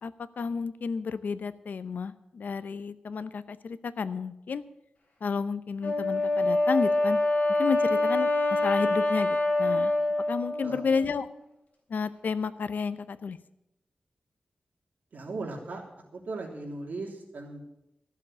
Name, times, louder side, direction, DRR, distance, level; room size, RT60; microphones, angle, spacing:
voice 1, 0.0-4.6 5.2-7.2 7.6-9.9 10.3-11.3 11.9-13.4, left 5 dB, 75° left, 14 dB, 0.7 m, -31 dB
Wind instrument woodwind instrument, 5.8-11.2, left 2 dB, 50° left, 3.4 m, -26 dB
voice 2, 15.1-15.8 16.1-17.7, right 3 dB, 70° right, 0 dB, 3.2 m, -38 dB
14.5 x 7.1 x 8.3 m, 0.87 s
wide cardioid pair, 100°, 3 cm